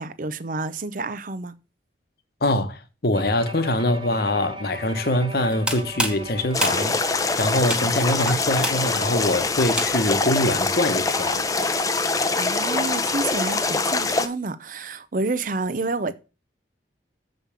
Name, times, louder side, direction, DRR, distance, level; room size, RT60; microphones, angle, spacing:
voice 1, 0.0-1.6 12.3-16.1, right 3 dB, 45° right, 0.7 m, -29 dB
voice 2, 2.4-11.4, left 1 dB, 55° left, 1.2 m, -24 dB
Bowed string instrument, 3.1-8.5, left 1 dB, 25° right, 0.9 m, -38 dB
sound 1, 5.4-10.3, right 1 dB, 5° right, 1.1 m, -30 dB
sound 2, 6.5-14.3, left 3 dB, 20° left, 0.6 m, -24 dB
7.4 x 5.3 x 7.2 m
head